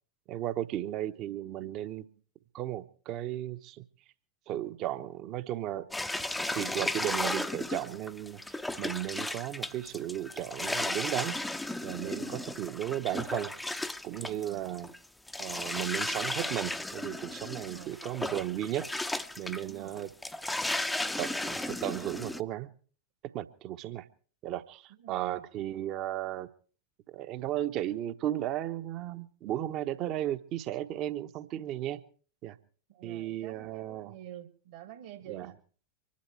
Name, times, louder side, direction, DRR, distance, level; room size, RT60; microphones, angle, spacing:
voice 1, 0.3-2.1 2.5-3.8 4.5-5.9 6.5-11.4 11.8-12.3 12.6-13.5 14.0-14.9 15.4-18.9 19.4-20.1 21.2-22.7 23.3-24.1 24.4-26.5 27.1-32.0 32.4-32.6 33.0-34.1 35.3-35.5, right 13 dB, 35° right, 1.1 m, -35 dB
sound 1, 5.9-15.0 15.3-22.4, left 2 dB, 5° left, 0.7 m, -35 dB
voice 2, 12.0-12.6 14.2-14.8 17.5-18.0 19.6-20.1 24.9-25.4 32.9-35.5, right 12 dB, 55° right, 1.9 m, -48 dB
25.0 x 11.5 x 4.6 m
figure-of-eight pair, 90°, 0 cm